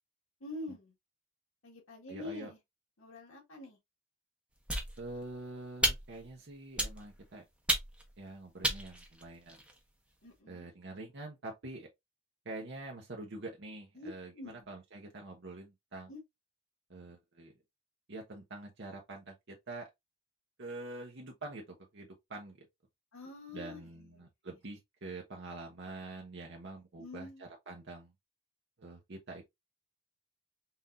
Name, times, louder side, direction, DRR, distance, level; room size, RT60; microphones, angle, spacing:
voice 1, 0.4-0.9 1.6-2.6 3.0-3.8 10.2-10.7 14.0-14.1 14.3-14.7 16.1-16.2 23.1-24.2 27.0-27.5, left 2 dB, 80° left, 1.9 m, -46 dB
voice 2, 2.1-2.5 5.0-7.4 8.2-9.6 10.5-11.9 12.4-16.1 16.9-17.5 18.1-19.9 20.6-22.7 23.5-28.1 28.8-29.4, right 2 dB, 55° right, 0.9 m, -46 dB
sound 1, 4.7-5.3 5.8-6.3 6.8-7.2 7.7-8.1 8.6-9.8, right 1 dB, 5° right, 0.8 m, -33 dB
5.7 x 2.7 x 2.6 m
head